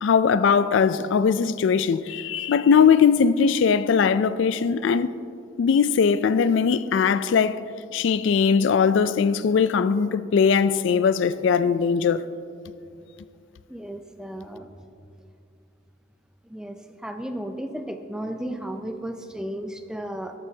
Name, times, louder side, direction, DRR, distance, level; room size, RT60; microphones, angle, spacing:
voice 1, 0.0-5.1 5.6-7.6 7.9-12.2, left 6 dB, 70° left, 0.3 m, -20 dB
voice 2, 13.7-14.7 16.5-16.8 17.0-20.3, right 1 dB, 5° right, 0.4 m, -34 dB
13.0 x 11.5 x 2.8 m
head